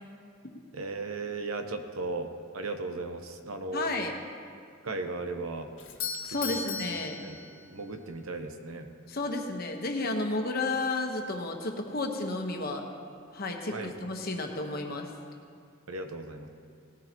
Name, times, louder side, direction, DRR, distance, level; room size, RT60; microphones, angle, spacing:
voice 1, 0.7-3.9 4.8-5.7 6.3-6.6 7.2-7.4 7.7-8.9 13.7-13.9 15.9-16.5, right 3 dB, 85° right, 6 dB, 1.0 m, -36 dB
voice 2, 3.7-4.2 6.2-7.2 9.1-12.8 13.3-15.1, left 2 dB, 45° left, 2 dB, 1.2 m, -32 dB
Doorbell, 5.8-7.9, left 5 dB, 80° left, 1.5 m, -37 dB
18.0 x 13.5 x 3.0 m, 2.4 s
head